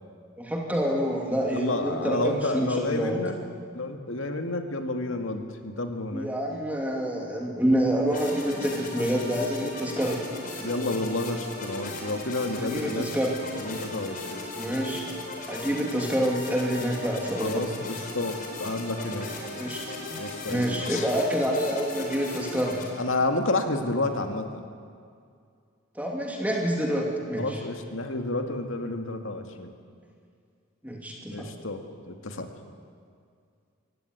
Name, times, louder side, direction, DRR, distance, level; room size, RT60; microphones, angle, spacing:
voice 1, 0.4-3.2 6.1-10.2 12.6-13.3 14.6-15.0 15.5-17.6 19.5-19.8 20.5-22.8 25.9-27.6 30.8-31.5, equal, 5° right, -1 dB, 2.7 m, -27 dB
voice 2, 1.5-3.4 3.7-6.3 10.6-13.1 13.6-14.5 17.4-19.3 20.2-21.1 23.0-24.6 27.4-29.7 31.3-32.5, left 2 dB, 70° left, 5 dB, 2.1 m, -30 dB
sound 1, 8.1-22.8, left 2 dB, 40° left, 4.6 m, -37 dB
23.5 x 17.0 x 9.5 m, 2.2 s
head